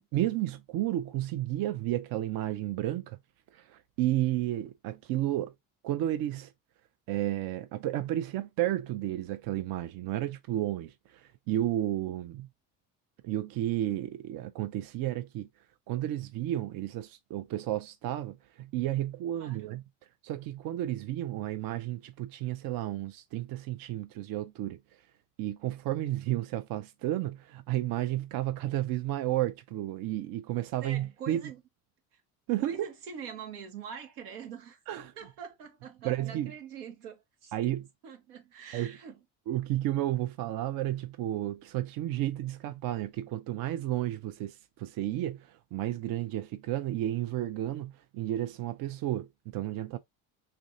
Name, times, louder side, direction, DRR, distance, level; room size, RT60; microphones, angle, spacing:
voice 1, 0.1-3.2 3.5-5.5 5.8-6.5 7.1-12.5 13.2-15.5 15.9-19.8 20.2-24.8 25.4-31.4 32.5-32.9 34.9-35.1 36.0-36.5 37.5-37.9 38.7-39.0 39.5-50.0, right 14 dB, 50° right, 0.5 m, -32 dB
voice 2, 19.3-19.8 30.8-31.6 32.1-32.2 32.6-37.5 38.0-39.2, right 7 dB, 80° right, 1.0 m, -44 dB
3.2 x 2.5 x 2.5 m
hypercardioid pair, 65°, 45 cm